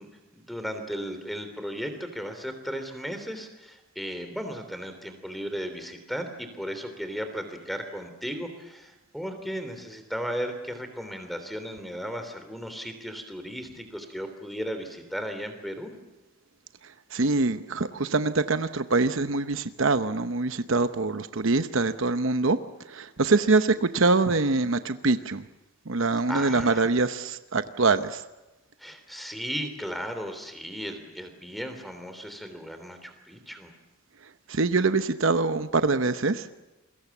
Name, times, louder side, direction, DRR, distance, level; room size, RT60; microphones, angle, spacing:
voice 1, 0.0-15.9 26.3-26.9 28.8-33.7, equal, ahead, 7 dB, 3.2 m, -35 dB
voice 2, 16.8-25.4 25.9-28.2 34.2-36.5, right 3 dB, 60° right, 10 dB, 0.9 m, -24 dB
28.5 x 22.5 x 7.3 m, 1.1 s
head